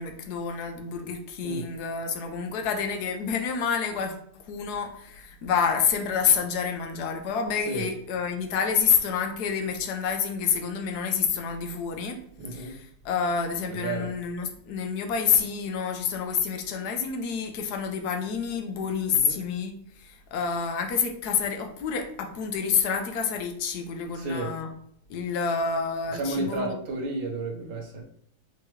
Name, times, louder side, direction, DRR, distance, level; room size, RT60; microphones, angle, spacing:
voice 1, 0.0-12.2 12.5-24.7 25.1-26.8, left 6 dB, 70° left, 5 dB, 1.0 m, -28 dB
voice 2, 12.4-12.7 13.7-14.1 19.1-19.4 24.1-24.5 26.1-28.0, right 3 dB, 75° right, 0 dB, 1.8 m, -32 dB
5.6 x 3.0 x 3.1 m, 0.67 s
omnidirectional pair, 2.3 m